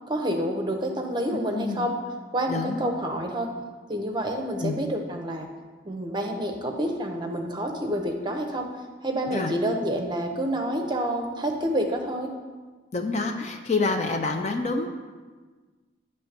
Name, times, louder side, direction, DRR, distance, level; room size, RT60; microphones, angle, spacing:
voice 1, 0.1-2.0 2.3-3.5 3.9-5.5 5.8-8.7 9.0-12.3, right 1 dB, 25° right, 2 dB, 0.7 m, -28 dB
voice 2, 1.5-1.9 2.5-2.8 4.6-4.8 9.3-9.5 12.9-14.9, left 3 dB, 35° left, 5 dB, 0.4 m, -27 dB
9.0 x 3.2 x 5.9 m, 1.4 s
head